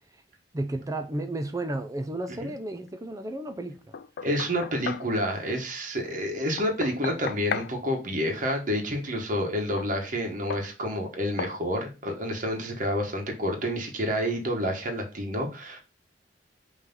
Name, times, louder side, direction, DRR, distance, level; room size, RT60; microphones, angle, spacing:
voice 1, 0.5-3.9, right 1 dB, 20° right, 0.5 m, -33 dB
Knock, 3.9-5.1 6.6-7.7 9.8-9.9 10.5-10.7 11.4-11.6, left 6 dB, 60° left, 0.4 m, -34 dB
voice 2, 4.2-15.8, equal, 50° right, 1.4 m, -29 dB
5.7 x 3.2 x 5.4 m
head